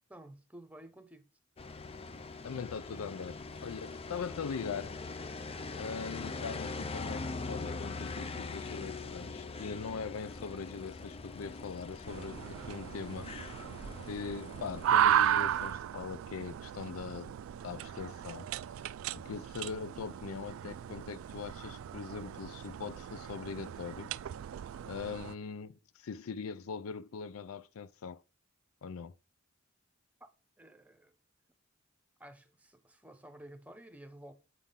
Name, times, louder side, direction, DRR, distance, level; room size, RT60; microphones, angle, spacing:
voice 1, 0.1-1.3 30.6-31.2 32.2-34.3, right 1 dB, 5° right, 1.0 m, -52 dB
sound 1, 1.6-15.7, left 3 dB, 30° left, 0.6 m, -42 dB
voice 2, 2.4-5.0 5.7-13.3 14.1-17.3 17.6-18.5 19.1-24.1 24.9-28.2 28.8-29.2, left 5 dB, 85° left, 0.4 m, -41 dB
sound 2, 12.1-25.4, right 10 dB, 70° right, 0.3 m, -35 dB
8.3 x 3.6 x 5.6 m
head